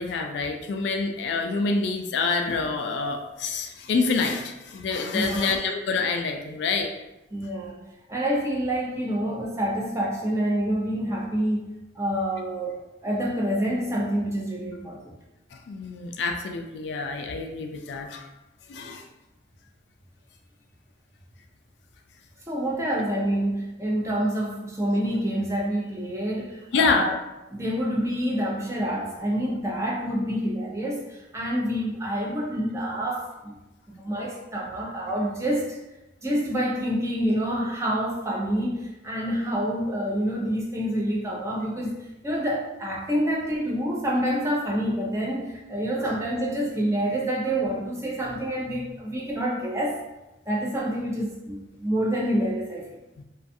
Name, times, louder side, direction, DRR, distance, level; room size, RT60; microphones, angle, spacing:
voice 1, 0.0-6.9 15.5-18.3 18.7-19.0 26.7-27.1 53.2-53.3, left 4 dB, 65° left, 4 dB, 0.3 m, -27 dB
voice 2, 5.1-5.5 7.3-7.8 8.1-11.7 11.9-15.1 22.5-27.1 27.5-33.6 33.9-35.8 36.2-41.9 42.2-50.0 50.5-52.8, equal, 15° right, -3 dB, 0.5 m, -27 dB
2.4 x 2.3 x 2.6 m, 1.0 s
head